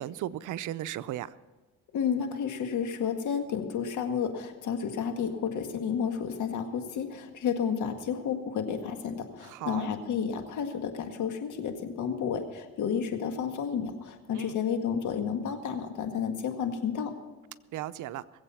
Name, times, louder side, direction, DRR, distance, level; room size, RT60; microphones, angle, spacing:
voice 1, 0.0-1.3 9.4-9.9 14.3-14.6 17.7-18.2, right 13 dB, 80° right, 15 dB, 0.6 m, -36 dB
voice 2, 1.9-17.1, left 7 dB, 80° left, 6 dB, 1.8 m, -31 dB
20.5 x 8.0 x 5.7 m, 1.3 s
cardioid pair, 90°, 30 cm